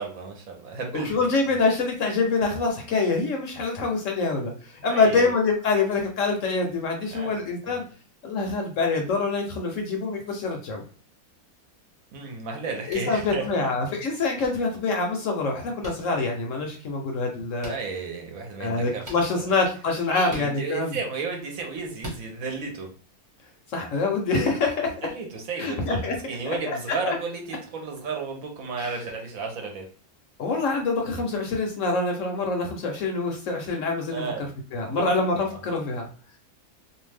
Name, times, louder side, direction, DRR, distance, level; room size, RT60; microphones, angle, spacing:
voice 1, 0.0-1.2 4.9-5.3 7.1-7.4 7.6-7.8 12.1-13.7 17.6-19.5 20.1-22.9 25.1-29.9 34.1-34.5 34.9-35.6, right 4 dB, 65° right, 2 dB, 1.0 m, -33 dB
voice 2, 0.9-7.8 8.2-10.8 12.9-17.7 18.6-21.0 23.7-25.1 25.6-26.2 26.5-26.8 27.0-27.2 28.8-28.9 30.4-34.2 34.7-36.1, left 3 dB, 65° left, 2 dB, 0.9 m, -25 dB
sound 1, 12.8-13.1 14.4-14.5 15.8-15.9 17.6-17.8 19.0-19.2 20.2-20.5 22.0-22.2, right 1 dB, 15° right, 0.8 m, -39 dB
2.6 x 2.1 x 3.3 m, 0.39 s
omnidirectional pair, 1.6 m